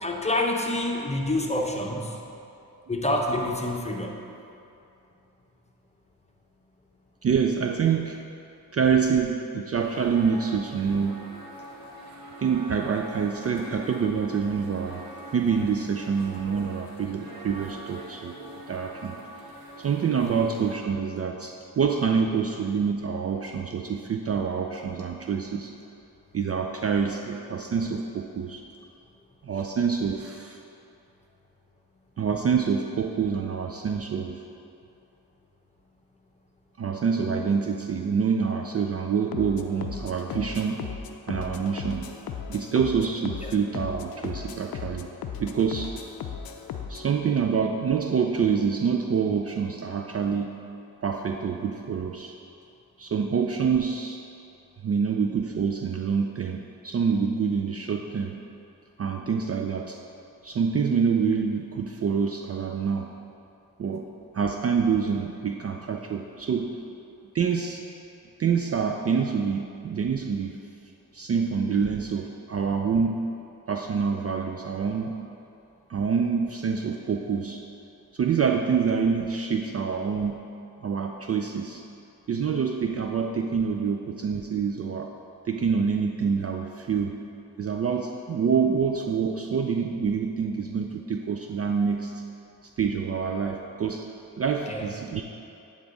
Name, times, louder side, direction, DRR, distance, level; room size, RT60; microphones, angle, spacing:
voice 1, 0.0-2.2 2.9-4.2 43.4-43.5 94.7-94.9, left 1 dB, 15° left, 1 dB, 0.8 m, -27 dB
voice 2, 7.2-8.2 8.7-11.2 12.4-15.0 15.3-18.4 18.7-19.2 19.8-25.7 26.3-28.6 29.4-30.6 32.2-34.4 36.8-40.9 41.3-42.1 42.5-45.1 45.4-45.9 46.9-50.5 51.0-52.3 53.0-54.2 54.8-58.3 59.0-60.0 60.4-63.1 63.8-64.1 64.3-66.7 67.3-67.8 68.4-70.6 71.1-73.3 73.7-75.2 75.9-77.6 78.1-80.4 80.8-81.8 82.3-85.1 85.5-87.2 87.6-92.2 92.8-94.1 94.4-95.2, right 6 dB, 40° right, 3 dB, 0.4 m, -26 dB
sound 1, 9.8-20.8, right 1 dB, 60° right, 1.2 m, -43 dB
sound 2, 39.3-47.1, left 7 dB, 60° left, 0.5 m, -37 dB
8.6 x 3.6 x 3.9 m, 2.7 s
supercardioid pair, 40°, 40 cm